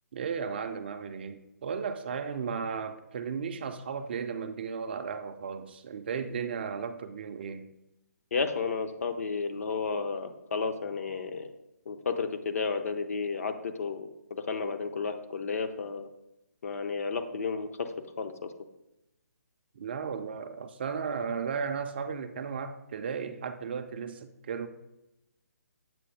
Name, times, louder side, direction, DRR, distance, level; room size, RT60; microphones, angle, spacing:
voice 1, 0.1-7.7 19.8-24.7, right 6 dB, 35° right, 8 dB, 0.4 m, -35 dB
voice 2, 8.3-11.5 11.9-14.1 14.5-16.1 16.6-17.9 18.2-18.5, left 5 dB, 55° left, 8 dB, 0.6 m, -32 dB
7.6 x 2.6 x 5.0 m, 0.91 s
hypercardioid pair, 160°, 9 cm